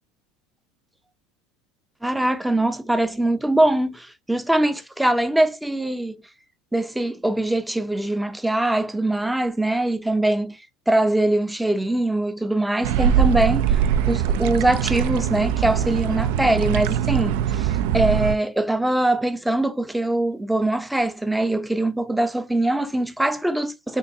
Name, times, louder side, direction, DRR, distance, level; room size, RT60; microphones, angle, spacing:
voice 1, 2.0-6.2 6.7-10.6 10.9-13.8 14.1-24.0, right 1 dB, 5° right, 0.5 m, -22 dB
sound 1, 12.8-18.4, right 9 dB, 75° right, 0.4 m, -22 dB
6.4 x 2.6 x 2.7 m
supercardioid pair, 135°, 0 cm